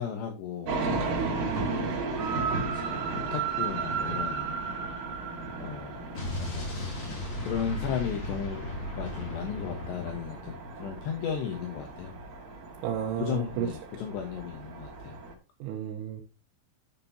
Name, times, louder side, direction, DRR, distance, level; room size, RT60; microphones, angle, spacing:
voice 1, 0.0-1.4 2.7-4.5 5.6-6.8 7.4-8.7 8.9-12.1 13.2-15.2, left 8 dB, 70° left, 3.0 m, -35 dB
sound 1, 0.7-15.3, right 4 dB, 55° right, 2.5 m, -34 dB
voice 2, 1.2-2.0 12.8-13.7 15.6-16.2, right 10 dB, 85° right, 3.6 m, -33 dB
Explosion, 6.1-10.9, left 1 dB, 30° left, 2.5 m, -36 dB
11.5 x 7.6 x 2.8 m
omnidirectional pair, 5.7 m